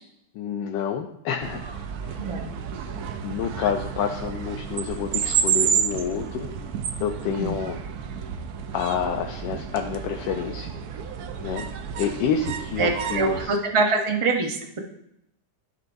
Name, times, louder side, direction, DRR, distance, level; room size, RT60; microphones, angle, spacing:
voice 1, 0.3-1.7 2.1-2.2 3.2-6.5 7.0-7.8 8.7-10.7 11.4-11.7 12.0-13.6, left 7 dB, 90° left, 3 dB, 1.3 m, -28 dB
sound 1, 1.4-13.5, right 7 dB, 70° right, 1.0 m, -30 dB
voice 2, 2.2-2.5 7.3-7.6 12.8-14.8, right 3 dB, 35° right, 3 dB, 0.5 m, -24 dB
13.5 x 4.6 x 2.6 m, 0.80 s
omnidirectional pair, 1.9 m